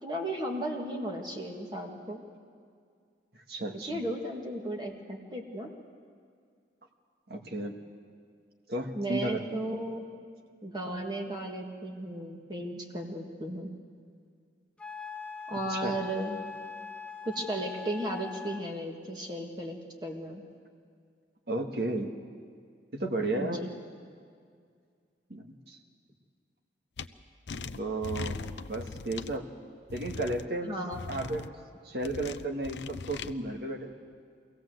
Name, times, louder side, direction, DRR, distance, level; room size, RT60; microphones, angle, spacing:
voice 1, 0.0-2.2 3.9-5.7 8.9-10.0 10.6-13.7 15.5-16.4 17.3-20.4 23.4-23.7 30.6-31.0, right 1 dB, 25° right, 1 dB, 1.9 m, -35 dB
voice 2, 3.5-4.0 7.3-7.7 8.7-9.6 15.7-16.0 21.5-22.1 22.9-23.7 25.3-25.8 27.8-28.4 28.7-29.4 29.9-30.8 31.1-31.4 31.8-33.9, right 2 dB, 60° right, 1 dB, 1.8 m, -33 dB
Wind instrument woodwind instrument, 14.8-18.7, left 5 dB, 5° left, 0.5 m, -42 dB
sound 1, 27.0-27.1 27.5-29.4 29.9-30.4 30.9-31.5 32.0-33.3, left 4 dB, 75° left, 0.6 m, -39 dB
23.5 x 17.0 x 7.9 m, 2.2 s
head